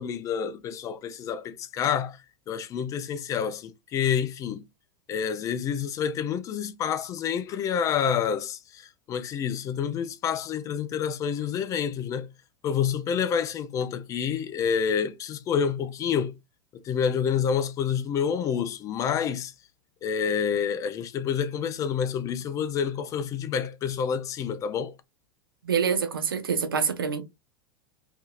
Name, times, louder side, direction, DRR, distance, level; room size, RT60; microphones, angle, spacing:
voice 1, 0.0-2.2 2.5-4.6 5.1-12.3 12.6-16.3 16.7-19.5 20.0-24.9, left 7 dB, 30° left, 0.4 m, -28 dB
voice 2, 25.6-27.2, right 6 dB, 75° right, 0.6 m, -26 dB
2.7 x 2.6 x 2.3 m
figure-of-eight pair, 85°, 12 cm